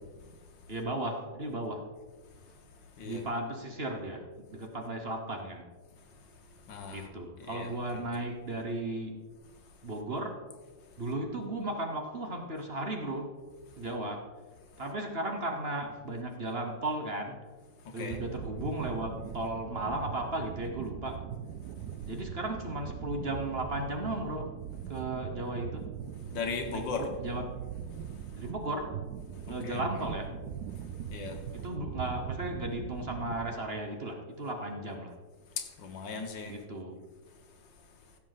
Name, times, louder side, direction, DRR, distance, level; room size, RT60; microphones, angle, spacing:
voice 1, 0.7-1.9 3.0-5.7 6.9-9.2 9.8-10.4 11.0-13.4 13.8-14.3 14.8-17.4 17.9-21.3 22.1-24.5 24.9-25.9 26.7-27.5 28.3-28.9 29.5-30.4 31.5-35.2 36.5-37.0, right 1 dB, 40° right, 4 dB, 1.1 m, -35 dB
voice 2, 6.7-7.1 7.4-8.1 17.8-18.2 26.3-27.1 29.5-29.8 31.1-31.4 35.6-36.5, left 5 dB, 65° left, 5 dB, 1.7 m, -38 dB
sound 1, 18.1-33.6, right 9 dB, 85° right, 0.8 m, -41 dB
16.0 x 7.3 x 4.0 m, 1.4 s
omnidirectional pair, 2.2 m